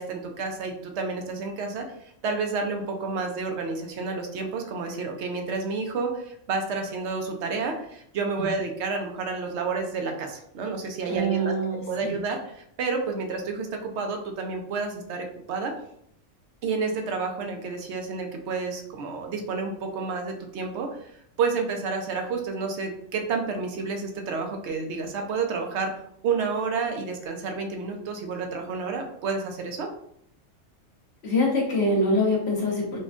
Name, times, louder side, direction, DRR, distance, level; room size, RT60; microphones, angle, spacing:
voice 1, 0.0-1.9 2.2-11.5 11.9-12.4 12.8-15.7 16.6-20.9 21.4-25.9 26.2-29.9, right 4 dB, 70° right, 4 dB, 0.8 m, -30 dB
voice 2, 11.1-12.2 31.2-33.0, left 1 dB, 55° left, -2 dB, 1.2 m, -24 dB
4.2 x 2.2 x 2.4 m, 0.68 s
omnidirectional pair, 1.3 m